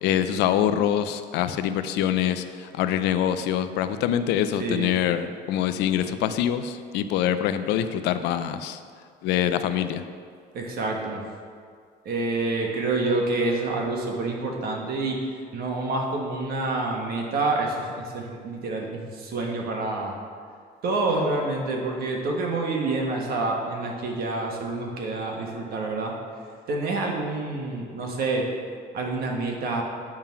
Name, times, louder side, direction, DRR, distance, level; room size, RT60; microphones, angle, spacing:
voice 1, 0.0-8.8 9.2-10.0, left 10 dB, 90° left, 11 dB, 0.4 m, -25 dB
voice 2, 4.6-4.9 10.5-11.2 12.0-15.2 15.5-20.1 20.8-26.1 26.7-28.5 28.9-29.8, right 3 dB, 65° right, 0 dB, 1.4 m, -27 dB
8.7 x 3.7 x 5.7 m, 2.1 s
cardioid pair, 110°, 17 cm